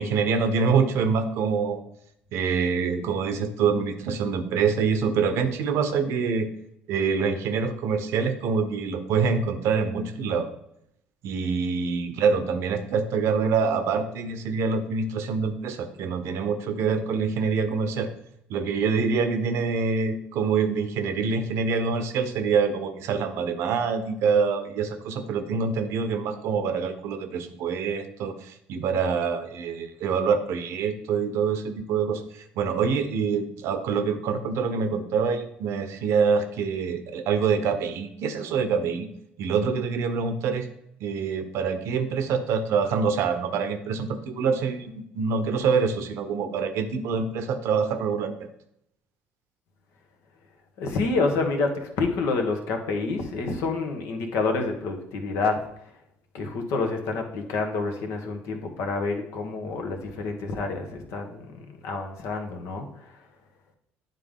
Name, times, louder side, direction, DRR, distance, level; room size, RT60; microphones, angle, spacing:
voice 1, 0.0-1.8 2.3-6.5 6.9-10.5 11.2-18.1 18.5-39.1 39.4-40.7 41.0-48.3, right 5 dB, 70° right, 9 dB, 0.8 m, -25 dB
voice 2, 50.8-55.6 56.3-63.1, left 3 dB, 70° left, 4 dB, 1.1 m, -28 dB
9.1 x 3.7 x 3.6 m, 0.76 s
supercardioid pair, 70°, 5 cm